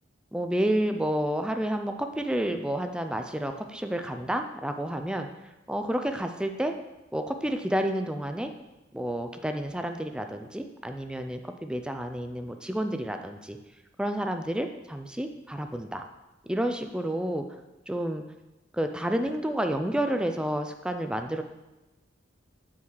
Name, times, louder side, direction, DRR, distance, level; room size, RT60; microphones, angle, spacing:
voice 1, 0.3-5.3 5.7-6.7 7.1-8.5 8.9-13.6 14.0-16.0 16.5-17.4 17.9-18.2 18.7-21.4, right 1 dB, 5° right, 6 dB, 0.4 m, -30 dB
5.7 x 4.7 x 6.3 m, 1.0 s
head